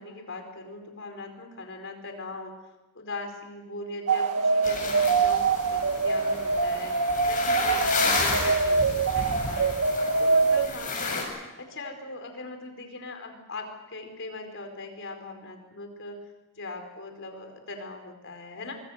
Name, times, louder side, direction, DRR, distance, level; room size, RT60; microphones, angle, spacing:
voice 1, 0.0-2.5 2.9-11.3 11.6-16.2 16.5-18.7, left 2 dB, 60° left, 5 dB, 4.9 m, -40 dB
sound 1, 4.1-10.7, right 4 dB, 85° right, 2.0 m, -24 dB
sound 2, 4.6-11.2, left 4 dB, 40° left, 7.9 m, -32 dB
25.5 x 24.0 x 6.7 m, 1.0 s
head